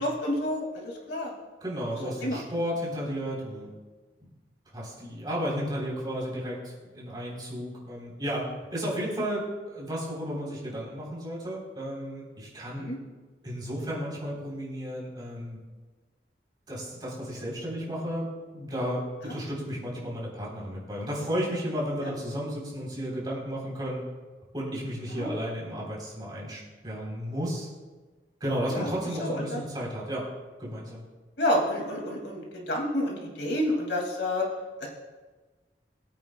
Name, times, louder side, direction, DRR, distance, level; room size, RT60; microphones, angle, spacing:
voice 1, 0.0-1.3 2.2-2.4 12.8-13.0 19.2-19.4 25.2-25.3 28.7-28.9 29.2-29.6 31.4-34.4 34.8-34.9, left 1 dB, 80° left, -1 dB, 2.3 m, -29 dB
voice 2, 1.6-3.7 4.7-12.9 13.4-15.6 16.7-24.0 24.5-27.7 28.4-30.3 30.6-31.0, equal, 25° right, -5 dB, 3.5 m, -33 dB
22.0 x 8.7 x 2.2 m, 1.3 s
head